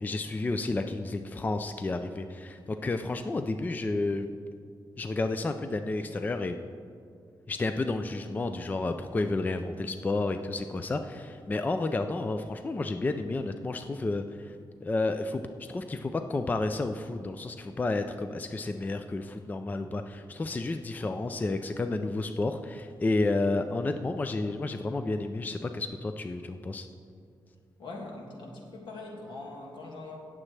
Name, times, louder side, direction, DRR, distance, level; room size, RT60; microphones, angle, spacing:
voice 1, 0.0-4.3 5.0-6.6 7.5-14.6 14.8-26.9, left 2 dB, 20° left, 8 dB, 0.3 m, -31 dB
voice 2, 27.8-30.2, left 2 dB, 80° left, -2 dB, 2.1 m, -42 dB
18.5 x 7.3 x 3.3 m, 2.3 s
wide cardioid pair, 155°, 8 cm